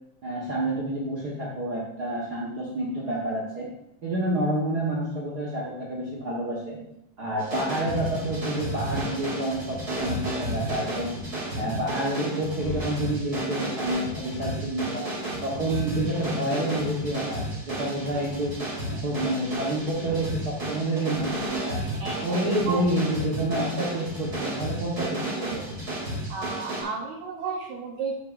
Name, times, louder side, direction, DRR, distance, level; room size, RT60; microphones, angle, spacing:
voice 1, 0.2-3.7 4.0-6.8 7.2-11.2 11.6-15.1 15.4-18.5 18.9-21.8 22.2-25.6, right 1 dB, 85° right, -4 dB, 0.8 m, -29 dB
sound 1, 7.4-26.8, right 1 dB, 25° right, 3.8 m, -32 dB
voice 2, 21.8-22.8 26.3-28.2, right 4 dB, 70° right, 1 dB, 1.9 m, -33 dB
12.5 x 8.0 x 2.6 m, 0.82 s
omnidirectional pair, 4.1 m